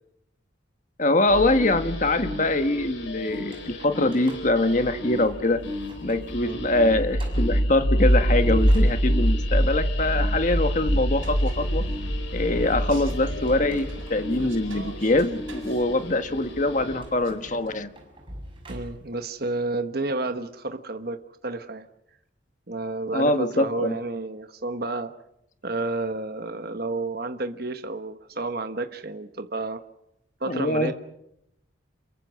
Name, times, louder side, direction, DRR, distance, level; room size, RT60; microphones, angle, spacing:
voice 1, 1.0-5.6 6.0-11.8 12.3-17.9 23.1-23.9 30.5-30.9, left 2 dB, 40° left, 8 dB, 1.5 m, -23 dB
sound 1, 1.3-17.2, equal, 80° left, 4.3 m, -27 dB
sound 2, 3.3-5.4 5.8-6.3 6.7-6.8 7.2-7.6 8.2-9.5 12.7-14.5 15.1-15.2 17.0-19.2, equal, 25° right, 6.5 m, -39 dB
sound 3, 11.1-17.8, right 1 dB, 85° right, 7.2 m, -45 dB
voice 2, 18.7-21.9 22.7-25.1 25.6-29.8 30.4-30.9, right 2 dB, 50° right, 7 dB, 1.3 m, -31 dB
28.0 x 22.5 x 6.3 m, 0.80 s
head